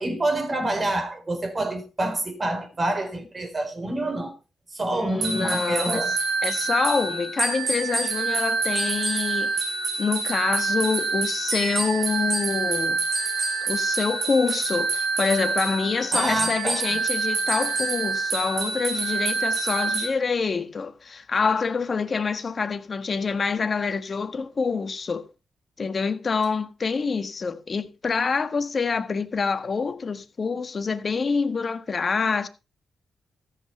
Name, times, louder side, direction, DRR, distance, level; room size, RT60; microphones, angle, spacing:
voice 1, 0.0-4.3 4.7-6.1 16.1-16.9, right 1 dB, 35° right, 4.1 m, -27 dB
voice 2, 4.9-6.0 6.4-9.7 10.0-13.0 13.6-25.2 25.8-32.5, left 5 dB, 45° left, 1.6 m, -26 dB
sound 1, 5.2-20.1, right 4 dB, 70° right, 4.7 m, -26 dB
14.5 x 8.0 x 4.4 m
cardioid pair, 60°, 0 cm